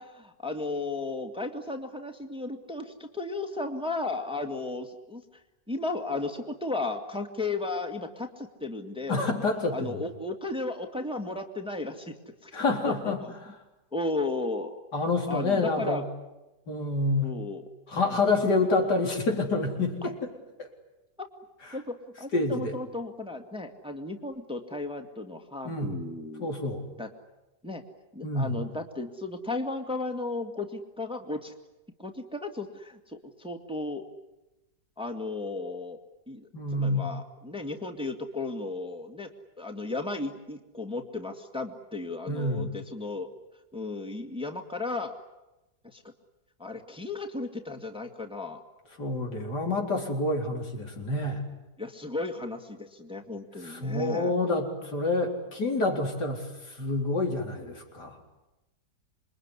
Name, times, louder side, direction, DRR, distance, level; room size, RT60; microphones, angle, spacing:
voice 1, 0.0-5.2 5.7-9.2 9.7-12.2 12.4-12.5 12.9-13.3 13.9-14.8 15.3-16.0 17.2-17.6 20.0-20.1 21.7-26.5 27.0-27.1 27.6-27.8 28.1-31.5 32.0-34.1 35.0-36.0 36.3-39.3 39.6-43.3 43.7-45.2 45.8-46.1 46.6-48.6 51.8-54.3, left 2 dB, 5° right, 5 dB, 2.0 m, -34 dB
voice 2, 9.1-10.0 12.5-13.2 14.9-16.0 16.7-17.3 17.9-20.3 20.6-20.7 22.3-22.8 25.6-26.0 26.4-26.8 28.2-28.6 36.5-37.1 42.3-42.7 49.0-51.4 53.6-58.2, left 2 dB, 75° left, 2 dB, 4.5 m, -28 dB
27.5 x 22.5 x 9.8 m, 0.99 s
omnidirectional pair, 1.8 m